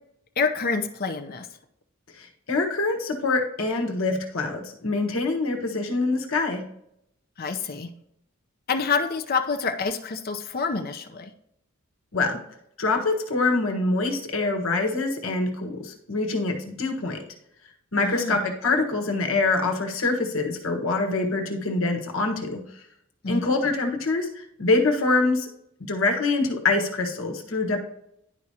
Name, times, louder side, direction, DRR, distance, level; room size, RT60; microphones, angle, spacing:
voice 1, 0.4-1.5 7.4-7.9 8.7-11.3 18.0-18.4 23.2-23.7, left 4 dB, 50° left, 6 dB, 0.7 m, -27 dB
voice 2, 2.2-6.6 12.1-12.4 12.8-17.2 17.9-22.6 23.3-25.5 25.8-27.8, left 3 dB, 80° left, 3 dB, 1.4 m, -25 dB
11.0 x 4.8 x 2.8 m, 0.77 s
head